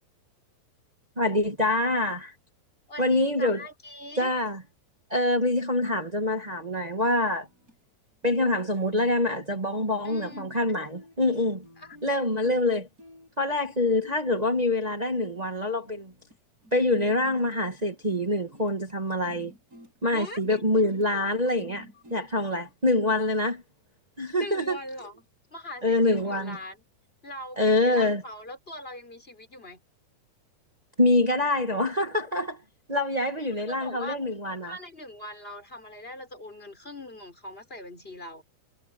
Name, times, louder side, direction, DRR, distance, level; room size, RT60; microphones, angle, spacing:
voice 1, 1.2-2.3 3.0-3.6 4.2-4.6 5.1-7.5 8.2-11.6 12.0-12.9 13.4-16.1 16.7-19.5 20.0-23.6 24.2-24.8 25.8-26.6 27.6-28.2 31.0-32.6 32.9-34.7, left 2 dB, 65° right, 0.4 m, -25 dB
voice 2, 2.9-4.3 10.0-10.5 11.8-12.0 20.1-20.6 21.4-21.5 21.9-22.0 24.3-26.8 27.2-29.8 33.7-34.2 34.6-38.4, left 1 dB, 15° left, 6.1 m, -41 dB
sound 1, 6.0-7.8 8.2-8.5 8.7-16.4 16.6-22.7, equal, 25° right, 5.4 m, -52 dB
omnidirectional pair, 4.1 m